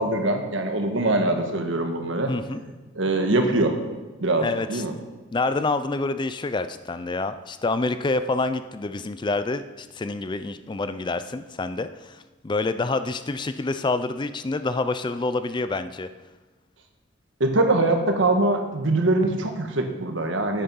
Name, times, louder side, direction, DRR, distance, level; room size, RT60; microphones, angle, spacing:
voice 1, 0.0-2.3 2.9-3.7 4.2-4.9 17.4-20.6, right 2 dB, 70° right, 5 dB, 1.4 m, -23 dB
voice 2, 2.3-2.6 4.4-4.8 5.3-16.1, left 3 dB, 25° left, 11 dB, 0.4 m, -27 dB
9.9 x 8.9 x 5.6 m, 1.2 s
head